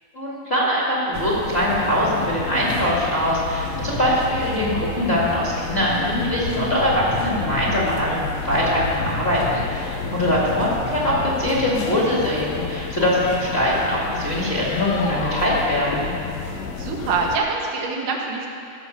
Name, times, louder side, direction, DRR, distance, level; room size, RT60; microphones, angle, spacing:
voice 1, 0.1-16.0, left 1 dB, 25° left, -5 dB, 1.6 m, -22 dB
sound 1, 1.1-17.4, left 5 dB, 70° left, 1.8 m, -31 dB
Bass guitar, 2.2-2.9 3.4-3.5 3.7-5.4 6.2-7.8 8.5-9.7 10.0-11.8, left 1 dB, 55° left, 2.1 m, -33 dB
voice 2, 16.8-18.5, right 4 dB, 90° right, 0 dB, 2.9 m, -25 dB
15.0 x 6.0 x 7.1 m, 2.5 s
omnidirectional pair, 3.6 m